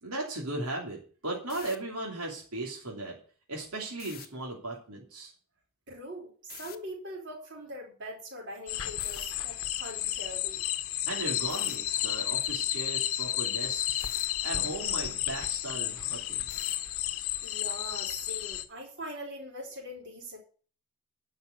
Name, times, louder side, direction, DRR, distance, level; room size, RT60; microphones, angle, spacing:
voice 1, 0.0-3.2 3.5-5.3 11.1-14.0 14.4-16.4, right 2 dB, 85° right, -1 dB, 3.1 m, -37 dB
sound 1, 1.4-1.8 3.9-4.3 6.5-6.8 9.0-9.3 11.5-11.8 14.0-14.3 16.5-16.9, left 11 dB, 40° left, 0.9 m, -46 dB
voice 2, 5.9-10.6 17.4-20.4, equal, 50° right, -1 dB, 4.7 m, -42 dB
sound 2, 8.7-18.6, left 12 dB, 75° left, 0.9 m, -32 dB
11.0 x 5.7 x 8.1 m, 0.41 s
head